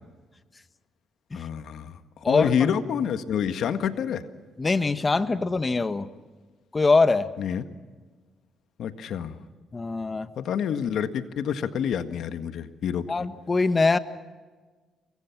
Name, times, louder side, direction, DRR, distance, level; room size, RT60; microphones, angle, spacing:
voice 1, 1.3-2.0 2.3-4.2 7.4-7.6 8.8-9.4 10.4-13.1, left 8 dB, 70° left, 9 dB, 1.7 m, -27 dB
voice 2, 2.2-2.7 4.6-6.1 6.7-7.3 9.7-10.3 13.1-14.0, left 3 dB, 25° left, 12 dB, 1.4 m, -23 dB
28.5 x 23.0 x 6.0 m, 1.4 s
cardioid pair, 90°, 0 cm